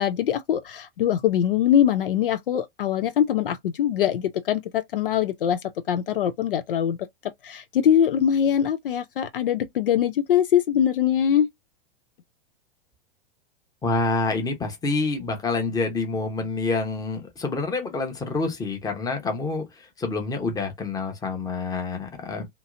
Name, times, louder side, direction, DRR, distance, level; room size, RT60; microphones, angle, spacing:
voice 1, 0.0-5.6 5.9-7.0 7.4-11.5, left 9 dB, 65° left, 0.5 m, -22 dB
voice 2, 13.8-22.5, left 3 dB, 10° left, 0.9 m, -27 dB
2.8 x 2.8 x 2.4 m
figure-of-eight pair, 95°, 29 cm